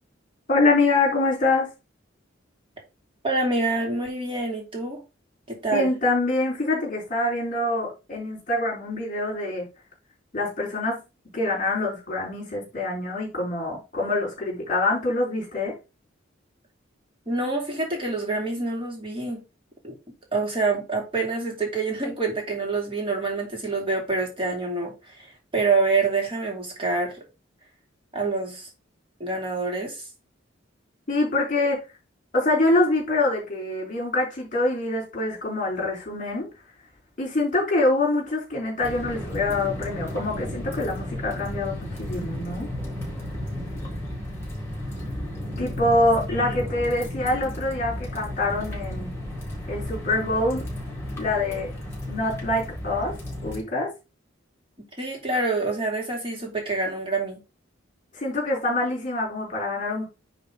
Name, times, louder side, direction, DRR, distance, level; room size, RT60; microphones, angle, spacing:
voice 1, 0.5-1.7 5.7-9.6 10.3-11.0 11.3-15.7 31.1-31.8 32.3-36.5 37.2-42.7 45.6-49.1 49.7-50.6 51.2-51.7 52.1-53.1 53.4-53.9 58.1-60.0, left 2 dB, 40° left, 4.1 m, -25 dB
voice 2, 3.2-5.0 5.5-5.9 17.3-19.4 19.8-19.9 20.3-27.2 28.1-28.7 29.2-30.0 46.5-46.6 55.0-57.4, right 3 dB, 30° right, 3.2 m, -26 dB
sound 1, 38.8-53.6, left 1 dB, 15° left, 4.1 m, -33 dB
9.9 x 4.2 x 4.0 m
head